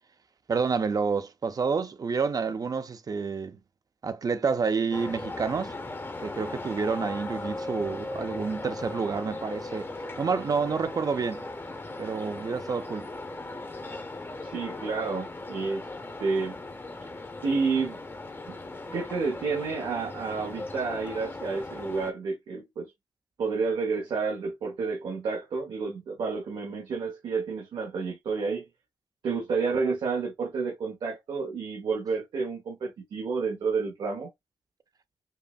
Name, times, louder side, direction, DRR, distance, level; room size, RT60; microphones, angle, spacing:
voice 1, 0.5-3.6 4.0-5.7 6.2-9.9 10.2-11.4 12.0-13.1, right 5 dB, 50° right, 0.6 m, -29 dB
sound 1, 4.9-22.1, left 2 dB, 25° left, 0.8 m, -38 dB
voice 2, 14.4-15.8 16.2-16.5 17.4-18.0 18.5-18.6 18.9-22.9 23.4-28.6 29.2-34.3, right 4 dB, 90° right, 1.1 m, -30 dB
5.4 x 2.1 x 2.3 m
cardioid pair, 75°, 8 cm